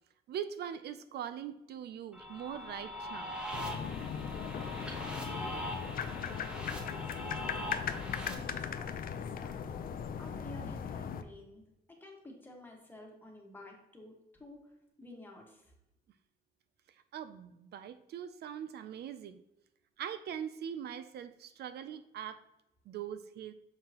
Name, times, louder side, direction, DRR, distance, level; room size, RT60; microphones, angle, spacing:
voice 1, 0.3-3.3 17.1-19.4 20.0-22.4 22.9-23.5, right 9 dB, 75° right, 11 dB, 0.5 m, -42 dB
sound 1, 2.1-8.3, equal, 5° right, 1.0 m, -42 dB
sound 2, 3.5-11.2, left 7 dB, 60° left, 0.5 m, -38 dB
voice 2, 4.1-7.6 7.8-9.8 10.2-11.6 11.9-14.7 15.0-15.6, left 1 dB, 10° left, 0 dB, 1.4 m, -52 dB
6.7 x 5.6 x 2.9 m, 0.87 s
cardioid pair, 140°, 17 cm